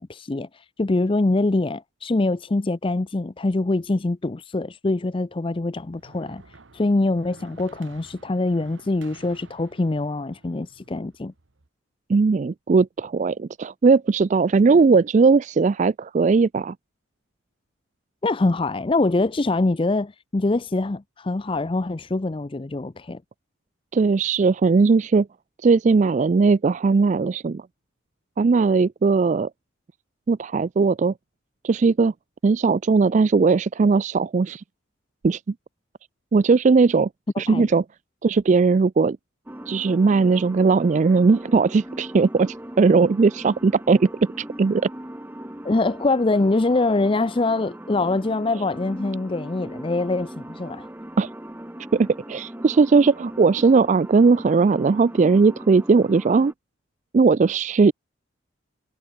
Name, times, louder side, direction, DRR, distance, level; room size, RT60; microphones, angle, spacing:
voice 1, 0.0-11.3 18.2-23.2 37.4-37.7 45.6-50.9, left 2 dB, 25° left, 0.5 m, -24 dB
sound 1, 5.5-11.7, right 3 dB, 70° right, 1.4 m, -51 dB
voice 2, 12.1-16.7 23.9-25.3 25.6-27.6 28.4-29.5 30.3-31.1 31.6-32.1 32.4-34.6 35.2-35.4 36.3-37.1 37.4-37.8 38.2-39.2 39.7-44.9 51.2-51.3 51.9-56.5 57.1-57.9, right 4 dB, 35° right, 0.3 m, -18 dB
sound 2, 39.5-56.5, right 1 dB, 10° right, 1.1 m, -39 dB
head